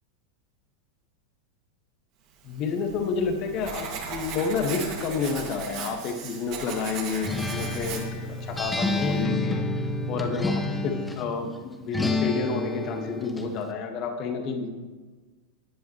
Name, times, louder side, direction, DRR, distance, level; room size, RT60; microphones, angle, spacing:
voice 1, 2.4-14.7, left 5 dB, 35° left, 4 dB, 1.9 m, -30 dB
Writing, 2.5-9.2, right 5 dB, 40° right, 2.4 m, -38 dB
Acoustic guitar, 7.2-11.3 11.9-13.5, left 2 dB, 10° left, 1.3 m, -29 dB
17.5 x 11.0 x 3.3 m, 1.3 s
figure-of-eight pair, 90°, 0 cm